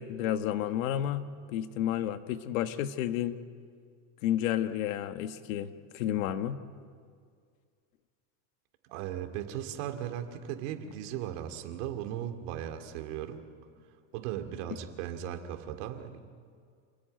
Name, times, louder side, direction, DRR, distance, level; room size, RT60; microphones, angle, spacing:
voice 1, 0.0-3.4 4.2-6.6, left 11 dB, 90° left, 10 dB, 1.4 m, -31 dB
voice 2, 8.9-13.4 14.1-16.2, right 10 dB, 65° right, 6 dB, 2.5 m, -37 dB
28.0 x 17.5 x 9.2 m, 2.1 s
cardioid pair, 165°, 39 cm